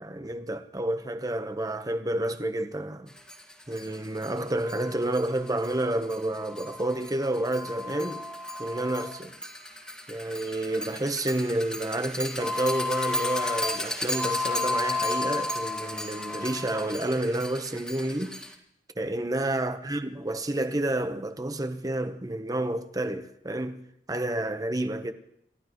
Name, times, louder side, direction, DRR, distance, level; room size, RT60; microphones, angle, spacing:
voice 1, 0.0-3.1 3.7-8.2 8.6-9.3 10.1-18.4 19.0-23.8 24.1-25.1, right 1 dB, 20° right, 1.0 m, -30 dB
sound 1, 3.3-3.4 3.8-3.9 4.2-4.3 4.6-18.5, left 2 dB, 5° left, 1.9 m, -33 dB
29.0 x 14.5 x 3.1 m
head